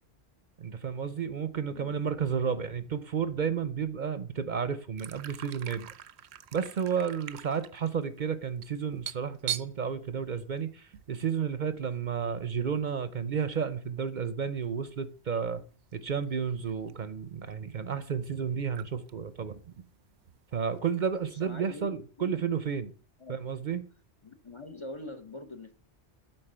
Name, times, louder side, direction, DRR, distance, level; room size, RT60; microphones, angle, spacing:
voice 1, 0.6-5.9 6.5-15.6 15.9-19.6 20.5-22.9 23.3-23.8, right 7 dB, 50° right, 12 dB, 0.7 m, -32 dB
sound 1, 5.0-11.1 11.4-11.5 11.9-12.3 13.2-13.3 14.7-14.9 15.9-16.0 16.2-17.1 17.5-17.6 18.4-18.5 18.7-19.1 19.4-21.6, right 11 dB, 80° right, 0.8 m, -42 dB
voice 2, 21.3-22.4 23.2-23.4 24.2-25.7, left 2 dB, 30° left, 7 dB, 0.7 m, -44 dB
8.8 x 3.9 x 6.7 m, 0.39 s
omnidirectional pair, 1.1 m